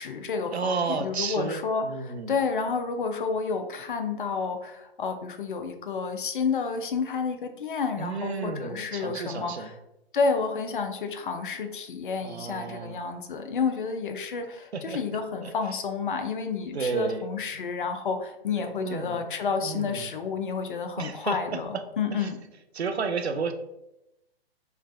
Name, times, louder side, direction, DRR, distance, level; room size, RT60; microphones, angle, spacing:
voice 1, 0.0-9.7 10.1-22.4, left 5 dB, 55° left, 6 dB, 0.5 m, -30 dB
voice 2, 0.5-2.4 8.0-9.7 12.2-13.0 14.7-15.0 15.4-15.5 16.7-17.3 18.6-19.2 19.6-20.1 21.0-21.6 22.2-22.3 22.7-23.5, right 5 dB, 85° right, 8 dB, 0.5 m, -32 dB
3.2 x 3.0 x 2.4 m, 0.90 s
figure-of-eight pair, 125°, 31 cm